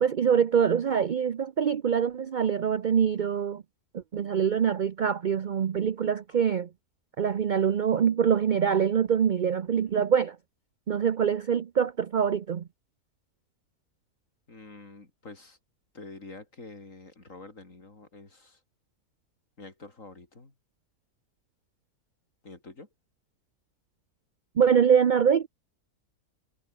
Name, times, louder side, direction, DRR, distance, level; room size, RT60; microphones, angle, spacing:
voice 1, 0.0-3.6 3.9-6.7 7.2-10.4 10.9-12.6 24.6-25.5, right 7 dB, 60° right, 0.4 m, -24 dB
voice 2, 14.5-15.6 15.9-18.6 19.6-20.5 22.4-22.9, left 3 dB, 55° left, 4.5 m, -47 dB
omnidirectional pair, 1.7 m